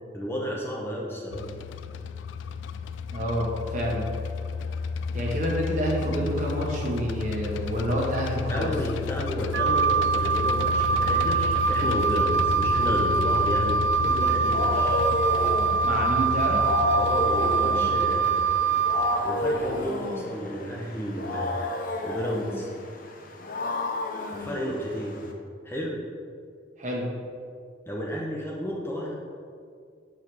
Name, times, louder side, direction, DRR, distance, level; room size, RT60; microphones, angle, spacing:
voice 1, 0.1-1.4 8.5-15.0 16.9-18.5 19.2-21.6 22.0-22.7 24.3-25.2 25.6-26.0 27.9-29.1, equal, 15° left, -3 dB, 0.8 m, -32 dB
sound 1, 1.3-19.9, left 5 dB, 85° left, 0.3 m, -32 dB
voice 2, 3.1-4.1 5.1-8.7 15.8-16.7 26.8-27.1, equal, 40° right, -3 dB, 1.4 m, -28 dB
Wind instrument woodwind instrument, 9.5-19.2, right 5 dB, 70° right, 0.3 m, -24 dB
Wild animals, 14.1-25.3, left 2 dB, 50° left, 0.7 m, -31 dB
7.2 x 4.8 x 4.7 m, 2.2 s
head